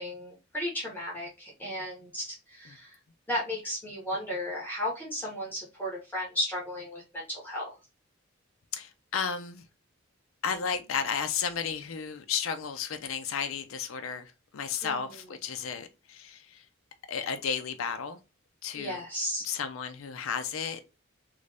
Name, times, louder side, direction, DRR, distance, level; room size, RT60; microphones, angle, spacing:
voice 1, 0.0-3.0 3.3-7.8 14.8-15.2 18.7-19.4, left 1 dB, 10° left, 1.1 m, -34 dB
voice 2, 8.7-9.6 10.4-16.6 17.1-18.2 18.6-19.0 19.4-20.8, left 6 dB, 75° left, 0.5 m, -33 dB
3.1 x 2.6 x 3.3 m
head